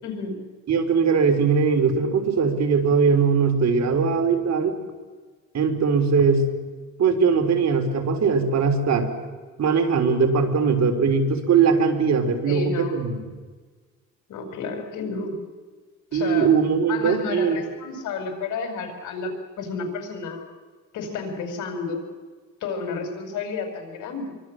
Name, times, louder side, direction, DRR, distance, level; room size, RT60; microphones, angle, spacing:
voice 1, 0.0-0.4 12.4-13.0 14.3-15.3 16.1-16.5 16.9-20.4 20.9-22.1 22.6-24.3, left 4 dB, 80° left, 5 dB, 5.1 m, -31 dB
voice 2, 0.7-4.8 5.5-6.4 7.0-9.1 9.6-13.2 16.1-17.6, right 5 dB, 60° right, 6 dB, 3.7 m, -20 dB
26.5 x 23.5 x 7.6 m, 1.4 s
cardioid pair, 90°, 30 cm